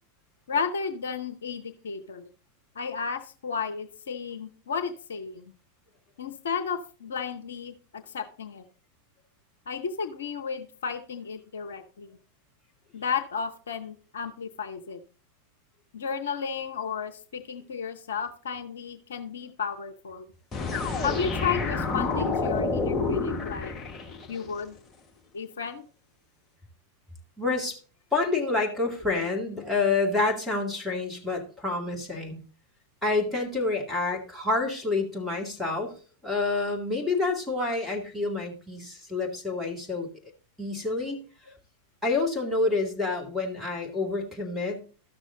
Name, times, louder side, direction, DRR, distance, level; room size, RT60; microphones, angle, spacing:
voice 1, 0.5-2.3 2.7-5.5 6.2-8.6 9.7-12.2 12.9-15.0 15.9-20.3 21.0-23.7 24.3-24.8 25.3-25.8, left 6 dB, 65° left, 8 dB, 0.7 m, -33 dB
sound 1, 20.5-24.4, left 3 dB, 20° left, 1.4 m, -28 dB
voice 2, 27.4-27.8 28.1-32.4 33.0-35.9 36.2-40.1 40.6-41.2 42.0-44.8, left 3 dB, ahead, -3 dB, 2.2 m, -28 dB
13.0 x 6.2 x 3.8 m, 0.39 s
figure-of-eight pair, 90°, 0 cm